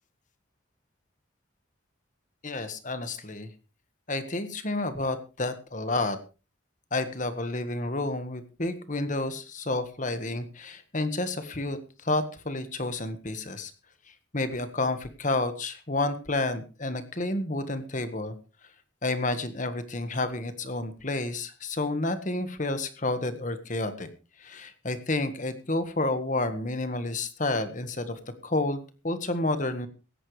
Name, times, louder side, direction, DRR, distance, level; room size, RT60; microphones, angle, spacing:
voice 1, 2.4-3.5 4.1-6.2 6.9-13.7 14.3-18.3 19.0-24.1 24.4-29.9, left 2 dB, 40° left, 10 dB, 1.6 m, -30 dB
17.0 x 14.5 x 3.3 m, 0.33 s
head